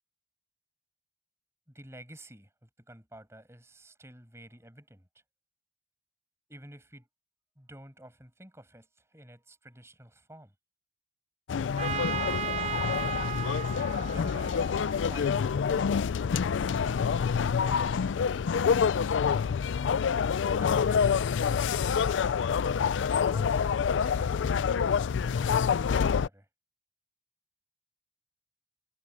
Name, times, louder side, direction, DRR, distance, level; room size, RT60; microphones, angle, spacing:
voice 1, 1.7-5.1 6.5-7.1 7.6-10.5 13.6-15.9 17.4-19.3 20.6-21.3 23.1-26.5, right 1 dB, 15° right, 6.5 m, -51 dB
sound 1, 11.5-26.3, left 6 dB, 90° left, 0.4 m, -27 dB
Trumpet, 11.8-15.5, right 6 dB, 35° right, 0.6 m, -35 dB
head